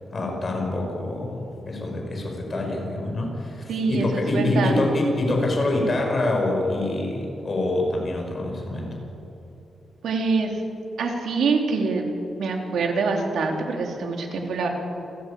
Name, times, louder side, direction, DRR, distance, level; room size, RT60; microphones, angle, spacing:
voice 1, 0.1-9.0, left 2 dB, 30° left, 1 dB, 5.8 m, -25 dB
voice 2, 3.7-4.7 10.0-10.6 11.0-12.0 12.4-14.7, right 4 dB, 80° right, 2 dB, 3.7 m, -25 dB
28.0 x 15.5 x 8.7 m, 2.9 s
wide cardioid pair, 145°, 0 cm